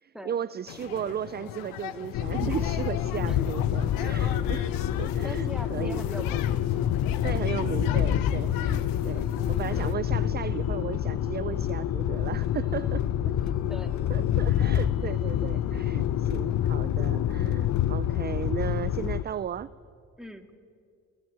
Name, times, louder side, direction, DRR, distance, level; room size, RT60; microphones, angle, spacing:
voice 1, 0.0-6.3 7.2-13.0 14.1-19.7, right 9 dB, 30° right, 16 dB, 0.5 m, -35 dB
sound 1, 0.7-10.0, left 11 dB, 80° left, 1.0 m, -40 dB
sound 2, 1.9-17.0, right 3 dB, 25° left, 3.5 m, -52 dB
sound 3, 2.1-19.2, left 11 dB, 55° left, 0.8 m, -27 dB
voice 2, 2.4-2.8 3.3-3.5 5.2-6.6 13.3-14.0 20.2-20.6, equal, ahead, 5 dB, 2.1 m, -41 dB
19.5 x 15.0 x 9.0 m, 2.2 s
supercardioid pair, 60°, 34 cm